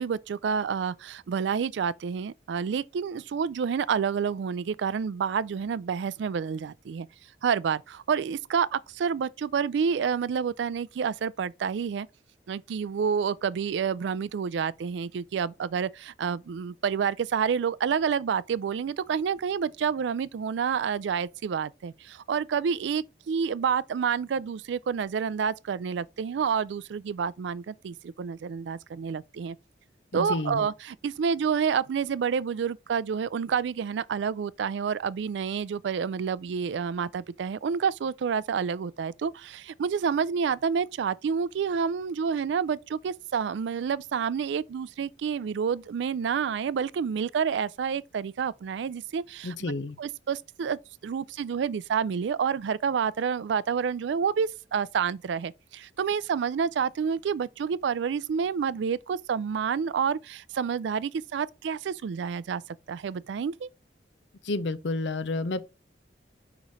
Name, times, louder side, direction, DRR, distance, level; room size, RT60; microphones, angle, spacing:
voice 1, 0.0-7.1 7.4-12.1 12.5-29.6 30.1-49.6 50.0-62.6 62.9-63.7, right 6 dB, 80° right, 0.3 m, -29 dB
voice 2, 30.1-30.7 49.4-50.0 64.4-65.6, left 2 dB, 80° left, 0.6 m, -30 dB
5.1 x 4.9 x 4.1 m
head